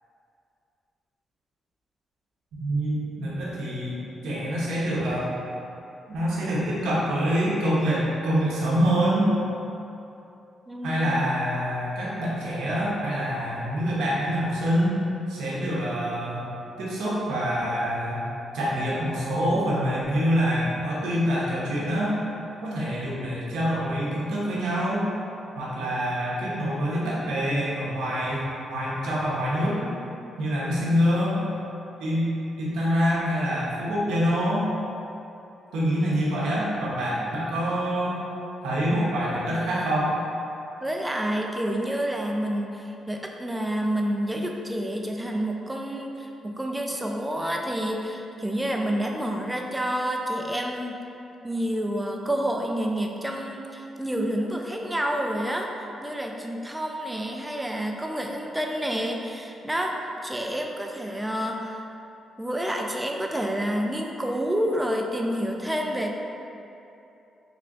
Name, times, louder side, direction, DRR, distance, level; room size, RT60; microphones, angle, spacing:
voice 1, 2.6-5.3 6.1-9.3 10.8-15.0 15.3-16.5 16.8-18.2 18.5-22.1 22.6-25.1 25.6-28.4 28.7-29.8 30.4-31.5 32.0-34.7 35.7-38.2 38.6-40.1, equal, 85° right, -7 dB, 0.8 m, -25 dB
voice 2, 10.7-11.1 40.8-51.0 51.4-59.9 60.2-61.8 62.4-66.2, equal, 10° right, 1 dB, 0.4 m, -29 dB
3.3 x 2.4 x 3.8 m, 2.8 s
supercardioid pair, 60°, 0 cm